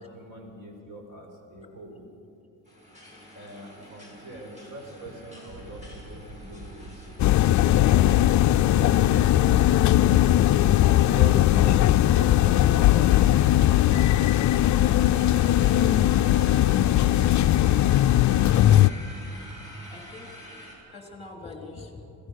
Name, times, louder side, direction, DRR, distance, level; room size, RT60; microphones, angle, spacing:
voice 1, 0.0-2.1 3.3-7.1 8.8-10.3 11.1-13.5 15.1-16.4, right 1 dB, 45° right, 3 dB, 4.8 m, -42 dB
sound 1, 2.6-20.7, equal, 15° right, 6.5 m, -47 dB
sound 2, 5.5-16.7, right 1 dB, 65° right, 5.9 m, -46 dB
sound 3, 7.2-18.9, left 13 dB, 45° left, 0.5 m, -19 dB
voice 2, 18.7-19.5 19.9-20.4 20.9-22.0, left 3 dB, 15° left, 2 dB, 3.4 m, -44 dB
26.0 x 17.0 x 6.6 m, 2.7 s
cardioid pair, 145°, 42 cm